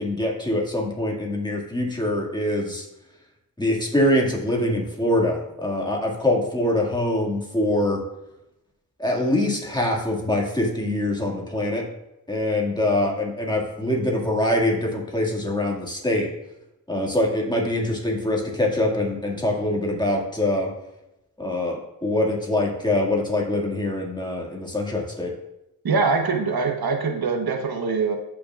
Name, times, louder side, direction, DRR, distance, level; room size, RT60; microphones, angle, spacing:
voice 1, 0.0-2.8 3.6-8.0 9.0-11.8 12.3-16.3 16.9-20.7 21.4-25.3, left 1 dB, 10° left, -2 dB, 2.1 m, -24 dB
voice 2, 25.8-28.2, right 4 dB, 90° right, 3 dB, 1.1 m, -23 dB
14.5 x 6.0 x 2.4 m, 0.89 s
wide cardioid pair, 70°, 36 cm